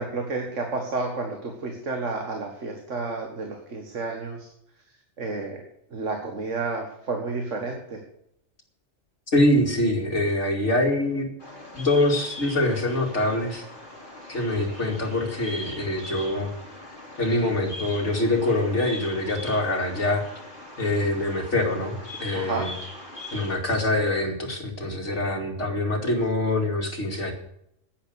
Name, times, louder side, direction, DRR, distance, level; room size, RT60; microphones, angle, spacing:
voice 1, 0.0-4.5 5.2-5.6 5.9-8.0 22.3-22.7, right 3 dB, 70° right, 3 dB, 2.0 m, -31 dB
voice 2, 9.3-11.3 11.7-13.6 14.3-16.5 17.2-20.2 20.8-22.7 23.3-27.3, left 1 dB, 60° left, 1 dB, 2.9 m, -24 dB
Bird vocalization bird call bird song, 11.4-23.6, left 1 dB, 40° left, 4.2 m, -41 dB
10.5 x 9.9 x 6.4 m, 0.76 s
omnidirectional pair, 1.3 m